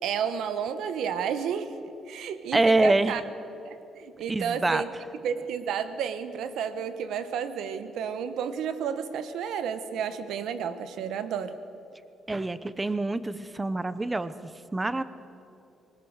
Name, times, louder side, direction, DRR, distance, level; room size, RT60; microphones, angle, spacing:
voice 1, 0.0-1.7 2.1-3.2 3.6-4.9 5.2-11.6, right 7 dB, 80° right, 11 dB, 1.2 m, -31 dB
voice 2, 2.5-3.2 4.3-4.8 12.3-14.3 14.7-15.0, right 2 dB, 20° right, 14 dB, 0.9 m, -25 dB
20.5 x 19.5 x 6.6 m, 2.9 s
cardioid pair, 90°, 0 cm